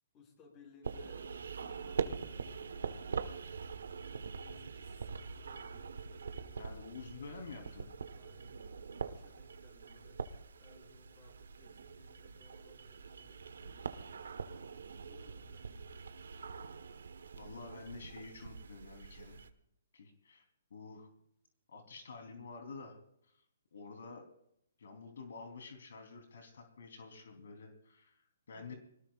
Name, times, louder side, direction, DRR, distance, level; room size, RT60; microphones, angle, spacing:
voice 1, 0.1-1.3 1.7-3.3 4.4-8.6 9.0-10.2 10.6-13.9 15.0-16.0 28.6-28.8, left 3 dB, 25° left, 1 dB, 6.9 m, -63 dB
sound 1, 0.8-19.5, right 5 dB, 90° right, 1.3 m, -44 dB
voice 2, 6.6-7.9 9.9-10.0 17.3-19.4 19.9-20.4 20.7-21.1 21.7-23.0 23.2-23.4 23.7-24.3 24.8-28.7, left 4 dB, 75° left, 4 dB, 3.4 m, -49 dB
25.0 x 19.0 x 2.5 m, 0.74 s
hypercardioid pair, 160°, 0 cm